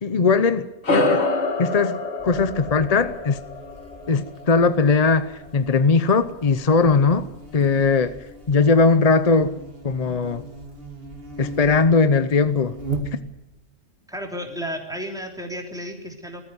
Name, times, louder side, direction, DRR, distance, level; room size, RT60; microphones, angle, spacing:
voice 1, 0.0-1.3 1.6-3.4 4.1-7.3 7.5-8.2 8.5-9.6 9.8-10.4 11.4-12.7, left 4 dB, 35° left, 0.7 m, -19 dB
sound 1, 0.8-5.6, left 2 dB, 55° left, 2.3 m, -27 dB
Buzz, 2.2-13.6, right 2 dB, 45° right, 2.7 m, -38 dB
voice 2, 14.1-16.4, equal, 5° right, 3.3 m, -32 dB
20.0 x 14.0 x 9.4 m
omnidirectional pair, 1.3 m